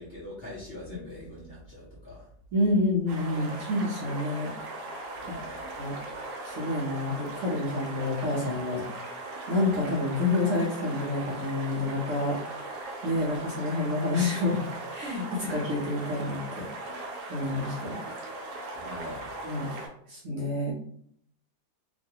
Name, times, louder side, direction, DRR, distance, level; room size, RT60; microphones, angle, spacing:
voice 1, 0.0-2.3 5.2-5.6 18.7-19.3, left 1 dB, 45° left, -7 dB, 0.8 m, -42 dB
voice 2, 2.5-4.5 5.8-5.9 6.4-8.8 9.5-14.6 14.9-16.7 17.3-18.0 19.4-19.7 20.1-20.7, left 2 dB, 60° right, -4 dB, 1.0 m, -28 dB
sound 1, 3.1-19.9, right 2 dB, 75° right, 1.3 m, -39 dB
3.0 x 2.6 x 2.7 m, 0.64 s
omnidirectional pair, 1.8 m